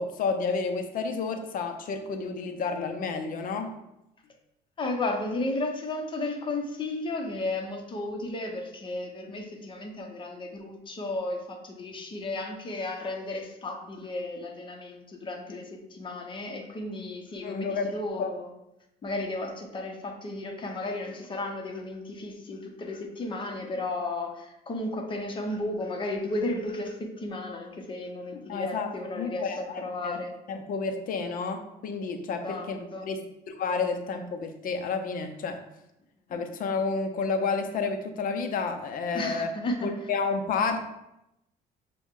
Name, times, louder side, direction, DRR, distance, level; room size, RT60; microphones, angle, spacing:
voice 1, 0.0-3.7 17.4-18.3 28.3-30.2 30.5-35.6 36.3-39.5 39.8-40.8, left 4 dB, 55° left, 6 dB, 0.6 m, -31 dB
voice 2, 4.8-18.5 19.0-30.3 32.4-32.7 32.9-33.1 36.3-36.4 39.1-39.9, left 2 dB, 30° left, 1 dB, 0.9 m, -34 dB
6.1 x 2.3 x 3.7 m, 0.86 s
cardioid pair, 110°, 17 cm